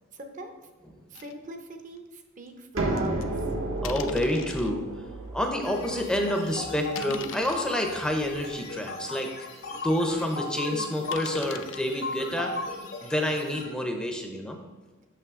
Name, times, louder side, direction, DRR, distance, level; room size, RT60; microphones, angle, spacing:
voice 1, 0.1-0.5 1.1-3.3, right 1 dB, 40° right, 6 dB, 0.6 m, -40 dB
sound 1, 1.1-1.4 1.9-2.0 3.0-3.2 3.8-4.7 5.4-5.5 6.0-6.2 6.9-7.9 8.5-8.6 9.1-9.2 9.4-9.5 11.1-11.8, left 8 dB, 65° left, 0.4 m, -41 dB
sound 2, 2.8-8.4, right 2 dB, 85° right, 1.2 m, -33 dB
voice 2, 3.8-4.8 5.3-9.3 9.8-12.5 13.0-14.6, left 1 dB, 5° left, 3 dB, 0.5 m, -28 dB
sound 3, 5.6-13.6, left 3 dB, 85° left, 1.6 m, -37 dB
6.7 x 5.7 x 3.6 m, 1.3 s
head